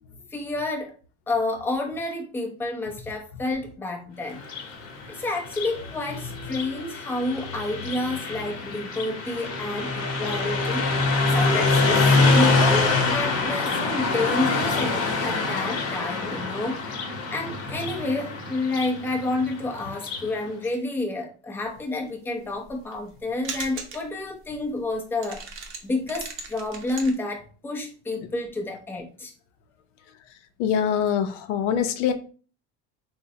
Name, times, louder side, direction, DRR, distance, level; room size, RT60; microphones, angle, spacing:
voice 1, 0.3-0.9 1.3-4.4 5.1-11.0 11.3-25.6 25.8-29.3, left 2 dB, 5° left, 0 dB, 0.5 m, -29 dB
Car passing by, 4.3-20.3, left 3 dB, 45° left, 0.9 m, -25 dB
sound 1, 22.3-23.2 23.4-24.2 24.5-24.6 24.9-25.0 25.2-27.1, right 5 dB, 35° right, 0.7 m, -38 dB
voice 2, 30.6-32.1, left 8 dB, 80° left, 8 dB, 0.6 m, -24 dB
3.7 x 2.1 x 2.7 m, 0.38 s
supercardioid pair, 130°, 35 cm